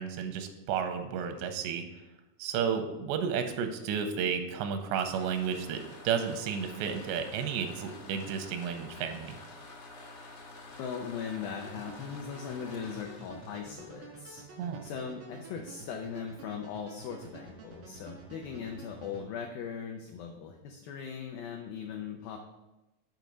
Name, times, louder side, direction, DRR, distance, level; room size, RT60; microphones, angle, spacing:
voice 1, 0.0-1.8 2.4-9.4 14.6-14.8, right 7 dB, 90° right, 7 dB, 2.9 m, -32 dB
sound 1, 4.8-14.6, left 2 dB, 65° left, 1.2 m, -49 dB
voice 2, 10.7-14.4 14.8-22.4, left 6 dB, 85° left, 3 dB, 2.0 m, -39 dB
sound 2, 11.6-19.3, right 3 dB, 70° right, 1.2 m, -49 dB
8.0 x 5.2 x 6.2 m, 1.0 s
omnidirectional pair, 5.0 m